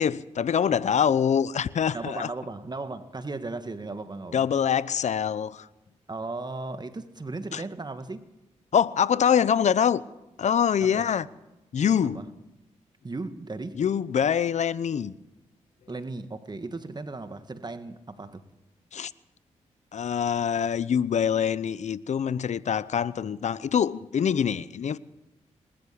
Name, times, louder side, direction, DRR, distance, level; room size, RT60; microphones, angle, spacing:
voice 1, 0.0-2.3 4.3-5.7 7.5-7.6 8.7-10.0 10.4-11.3 11.7-12.2 13.8-15.1 18.9-19.1 19.9-25.0, left 8 dB, 65° left, 0.9 m, -24 dB
voice 2, 1.9-4.5 6.1-8.3 10.8-11.1 12.1-12.3 13.0-13.8 15.9-18.4, right 3 dB, 35° right, 1.8 m, -36 dB
26.5 x 13.0 x 8.7 m
cardioid pair, 55°, 13 cm